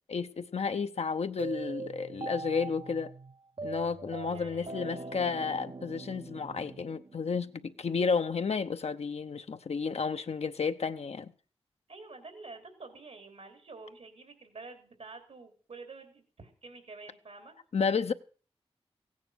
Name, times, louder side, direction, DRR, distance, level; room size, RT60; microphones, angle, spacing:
voice 1, 0.1-3.1 3.6-11.3 17.7-18.1, left 5 dB, 75° left, 0.8 m, -32 dB
sound 1, 1.4-7.6, right 4 dB, 50° right, 0.7 m, -42 dB
voice 2, 4.2-5.1 11.9-17.5, right 3 dB, 85° right, 3.3 m, -49 dB
16.0 x 9.6 x 6.4 m
cardioid pair, 45°, 11 cm